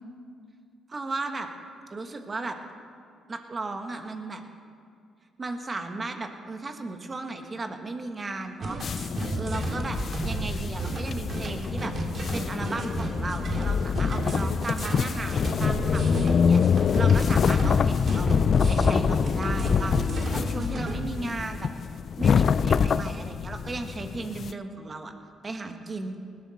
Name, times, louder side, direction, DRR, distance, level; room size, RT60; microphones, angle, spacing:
voice 1, 0.9-1.5 1.9-2.5 3.3-4.4 5.4-8.8 9.2-11.9 12.3-18.3 18.7-21.7 22.2-25.1 25.4-26.2, right 3 dB, 30° right, 5 dB, 1.5 m, -35 dB
sound 1, 8.6-20.9, right 2 dB, 50° right, 2.1 m, -32 dB
sound 2, 8.8-24.5, left 7 dB, 50° left, 0.3 m, -25 dB
19.5 x 12.5 x 4.3 m, 2.4 s
cardioid pair, 90°, 0 cm